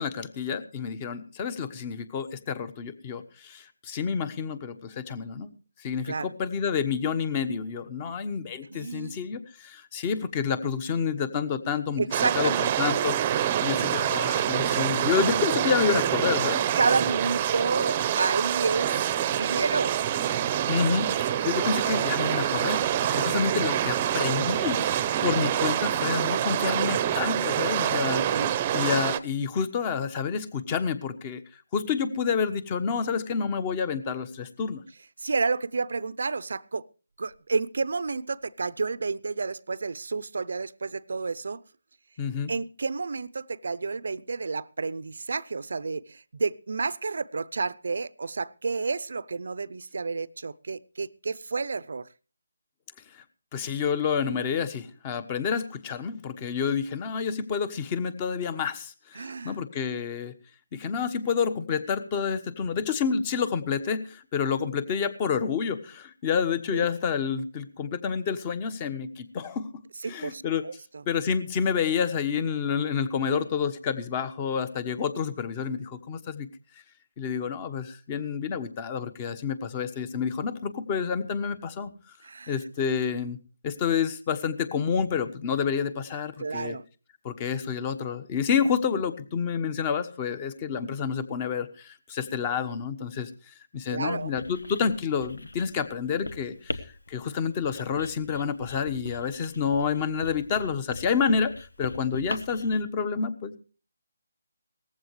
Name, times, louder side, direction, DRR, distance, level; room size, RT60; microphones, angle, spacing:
voice 1, 0.0-5.5 5.8-12.5 12.8-16.6 20.7-21.1 21.4-31.4 31.7-34.8 42.2-42.5 53.1-53.2 53.5-60.3 60.7-69.7 70.0-70.6 71.1-76.5 77.2-81.9 82.5-83.4 83.6-86.8 87.2-101.5 101.8-103.6, left 6 dB, 25° left, 1.2 m, -29 dB
voice 2, 8.7-9.2 12.0-13.0 16.8-19.0 19.3-20.0 28.1-28.5 35.2-36.8 37.2-41.6 42.5-52.1 59.2-59.6 66.7-66.9 70.0-71.0 82.2-82.6 86.4-86.8 93.9-94.3, right 4 dB, 65° right, 0.7 m, -30 dB
sound 1, 12.1-29.2, right 10 dB, 25° right, 0.8 m, -26 dB
Writing, 94.2-102.8, left 2 dB, 80° left, 1.4 m, -41 dB
18.5 x 15.0 x 3.2 m
figure-of-eight pair, 160°, 0 cm